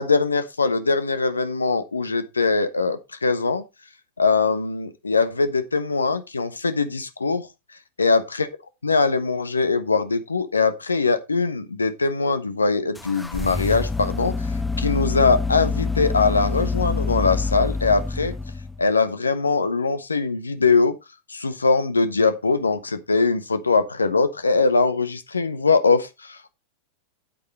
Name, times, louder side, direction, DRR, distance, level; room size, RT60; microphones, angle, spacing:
voice 1, 0.0-3.6 4.2-7.5 8.0-8.5 8.8-14.5 14.8-18.3 18.8-21.0 21.3-26.5, left 4 dB, 75° left, 1.2 m, -22 dB
sound 1, 12.9-18.8, left 4 dB, 5° left, 0.5 m, -26 dB
9.0 x 8.5 x 4.2 m
figure-of-eight pair, 90°, 0 cm